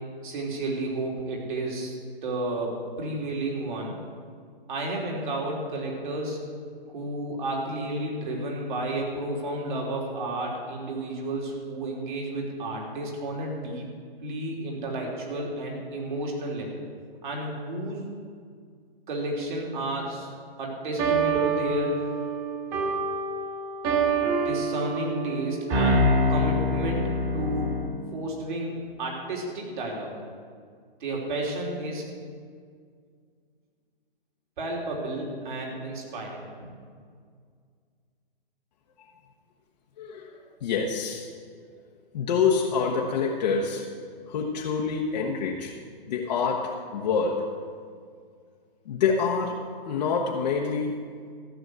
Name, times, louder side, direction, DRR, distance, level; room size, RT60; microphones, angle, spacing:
voice 1, 0.2-2.0 2.2-4.0 4.7-6.4 6.9-13.9 14.2-16.8 17.2-18.0 19.1-20.3 20.6-21.9 24.4-27.1 27.3-27.7 28.1-30.1 31.0-32.1 34.6-36.7, right 1 dB, 55° right, -2 dB, 3.5 m, -32 dB
sound 1, 21.0-27.9, right 1 dB, 25° right, 1.8 m, -26 dB
voice 2, 40.0-41.3 42.1-43.8 44.3-45.7 46.1-47.4 48.9-49.6 49.9-51.0, left 5 dB, 45° left, -1 dB, 1.1 m, -26 dB
14.5 x 6.2 x 8.0 m, 2.1 s
hypercardioid pair, 150°, 30 cm